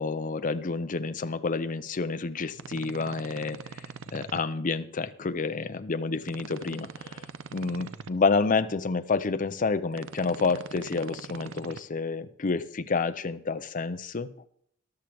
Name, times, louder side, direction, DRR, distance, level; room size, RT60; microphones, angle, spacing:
voice 1, 0.0-7.2 7.5-14.3, left 4 dB, 45° left, 10 dB, 0.6 m, -29 dB
sound 1, 2.5-4.4 6.2-8.1 9.9-11.8, right 4 dB, 85° right, 0.6 m, -42 dB
13.5 x 12.0 x 3.4 m, 0.66 s
head